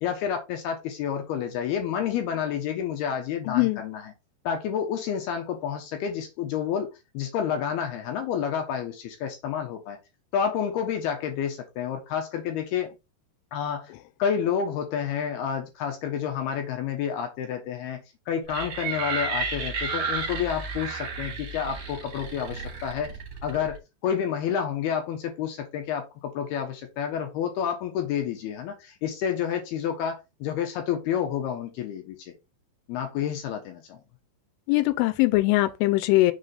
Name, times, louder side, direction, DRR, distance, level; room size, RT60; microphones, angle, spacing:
voice 1, 0.0-4.1 4.4-10.0 10.3-12.9 13.5-13.9 14.2-18.0 18.3-23.1 23.4-23.8 24.0-32.3 32.9-34.0, left 8 dB, 70° left, 2.8 m, -29 dB
voice 2, 3.5-3.8 34.7-36.3, left 19 dB, 90° left, 3.1 m, -21 dB
sound 1, 18.5-23.8, right 4 dB, 40° right, 3.2 m, -32 dB
6.7 x 4.8 x 4.0 m
omnidirectional pair, 5.4 m